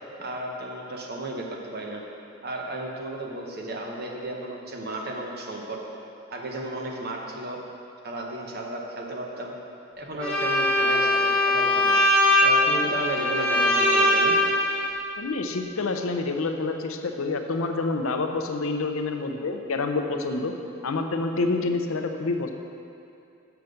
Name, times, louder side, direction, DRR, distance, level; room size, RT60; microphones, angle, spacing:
voice 1, 0.2-2.0 2.4-5.8 6.3-7.6 8.0-9.5 10.0-12.0 12.4-14.4, right 1 dB, 50° right, 0 dB, 1.0 m, -33 dB
Bowed string instrument, 10.2-14.9, left 1 dB, 5° left, 1.2 m, -21 dB
voice 2, 15.2-20.5 20.8-22.5, left 3 dB, 75° left, 5 dB, 0.6 m, -27 dB
6.8 x 5.8 x 6.4 m, 2.6 s
head